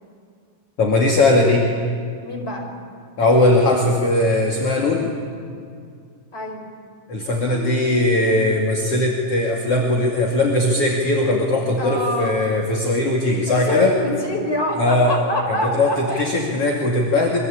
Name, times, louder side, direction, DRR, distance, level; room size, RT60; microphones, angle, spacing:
voice 1, 0.8-1.7 3.2-5.1 7.1-13.9 14.8-15.1 15.7-17.4, left 2 dB, 45° left, 0 dB, 3.1 m, -19 dB
voice 2, 2.2-2.7 6.3-6.6 11.8-12.4 13.5-16.3, equal, 15° left, 1 dB, 5.1 m, -25 dB
28.0 x 24.0 x 8.7 m, 2.3 s
omnidirectional pair, 4.0 m